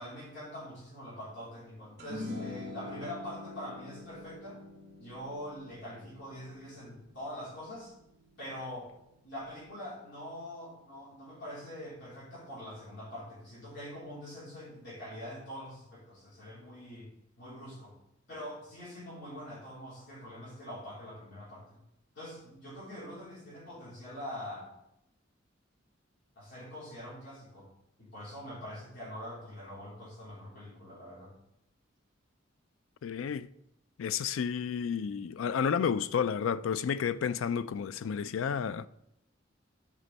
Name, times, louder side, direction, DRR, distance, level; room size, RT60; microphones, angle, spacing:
voice 1, 0.0-4.6 5.0-7.9 8.4-8.9 9.2-17.1 17.4-17.9 18.3-21.8 22.1-24.7 26.3-27.7 28.0-31.3, equal, 65° left, 3.4 m, -44 dB
sound 1, 2.0-8.5, left 2 dB, 60° right, 2.3 m, -45 dB
voice 2, 33.0-33.5 34.0-38.9, left 7 dB, 90° left, 0.4 m, -31 dB
9.8 x 5.2 x 4.1 m
head